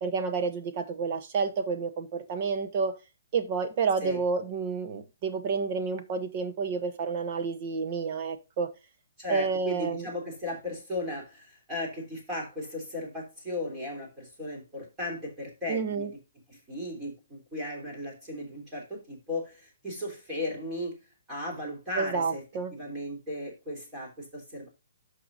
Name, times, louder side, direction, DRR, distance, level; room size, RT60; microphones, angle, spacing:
voice 1, 0.0-2.9 3.3-8.7 9.3-10.1 15.7-16.1 21.9-22.7, right 5 dB, 30° right, 0.9 m, -30 dB
voice 2, 9.2-16.1 16.5-21.0 21.3-22.4 22.7-24.7, left 1 dB, 10° right, 3.2 m, -36 dB
11.0 x 5.9 x 2.6 m
hypercardioid pair, 170°, 0 cm